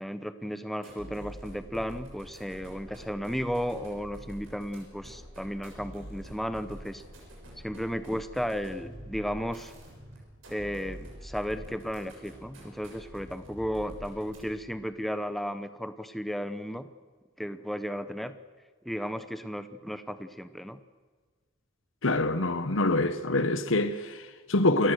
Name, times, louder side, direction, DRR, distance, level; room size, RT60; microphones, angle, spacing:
voice 1, 0.0-7.0 7.6-9.7 10.5-16.9 17.4-18.3 18.8-20.8, equal, ahead, 0.8 m, -34 dB
sound 1, 0.8-14.7, equal, 85° right, 7.1 m, -46 dB
voice 2, 22.0-24.9, left 2 dB, 75° left, 1.3 m, -26 dB
28.0 x 15.5 x 6.5 m
head